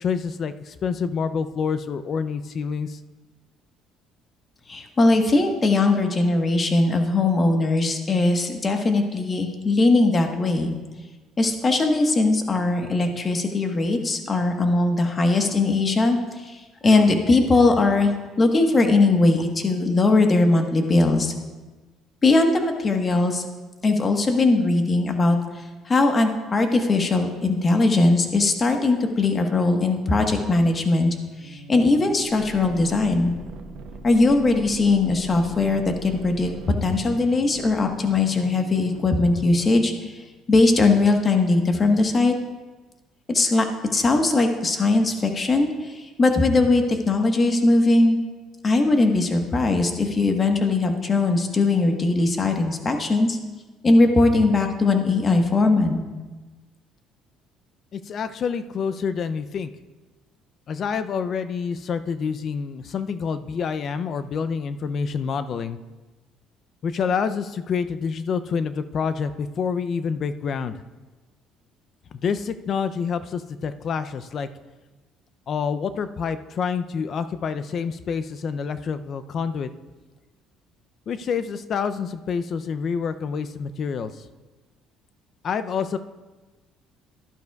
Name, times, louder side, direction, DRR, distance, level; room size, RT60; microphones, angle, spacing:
voice 1, 0.0-3.0 57.9-59.7 60.7-65.8 66.8-70.8 72.1-74.5 75.5-79.7 81.1-84.3 85.4-86.0, left 6 dB, 50° left, 12 dB, 0.5 m, -27 dB
voice 2, 4.7-10.7 11.4-21.3 22.2-23.4 23.8-25.4 25.9-31.1 31.4-33.3 34.0-36.5 36.8-40.1 40.5-42.4 43.3-43.7 43.9-48.2 48.6-53.4 53.8-56.0, left 3 dB, 30° left, 4 dB, 1.3 m, -20 dB
sound 1, 31.4-40.0, right 3 dB, 70° right, 0.9 m, -41 dB
12.0 x 11.5 x 2.4 m, 1.2 s
supercardioid pair, 90°, 0 cm